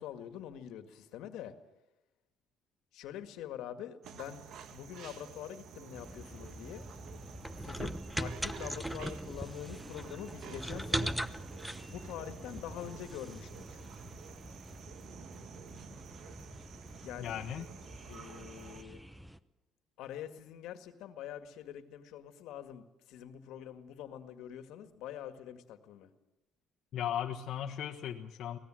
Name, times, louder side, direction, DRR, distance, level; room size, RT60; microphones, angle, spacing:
voice 1, 0.0-1.5 2.9-4.4 4.7-6.9 7.6-11.2 11.9-13.8 17.0-17.4 18.1-19.0 20.0-26.1, left 10 dB, 80° left, 8 dB, 1.9 m, -45 dB
sound 1, 4.0-18.8, right 7 dB, 65° right, 1.5 m, -51 dB
sound 2, 5.9-19.4, right 1 dB, 5° right, 0.9 m, -42 dB
voice 2, 17.2-17.7 26.9-28.6, left 10 dB, 65° left, 0 dB, 1.4 m, -37 dB
24.5 x 18.5 x 7.7 m, 0.97 s
cardioid pair, 110°, 0 cm